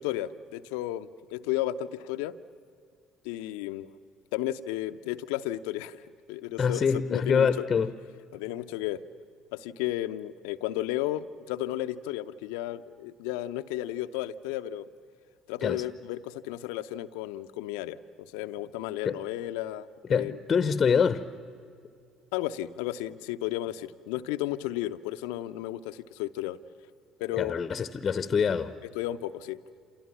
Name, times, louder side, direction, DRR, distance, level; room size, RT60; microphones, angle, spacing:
voice 1, 0.0-2.4 3.2-3.9 4.3-6.0 6.3-7.7 8.3-9.0 9.5-14.9 15.5-20.4 22.3-26.6 27.2-27.5 28.9-29.6, left 14 dB, 65° left, 12 dB, 0.8 m, -33 dB
voice 2, 6.6-7.9 15.6-15.8 19.0-19.2 20.1-21.2 27.3-28.7, left 6 dB, 35° left, 14 dB, 1.0 m, -25 dB
29.0 x 28.5 x 7.3 m, 2.3 s
figure-of-eight pair, 55°, 0 cm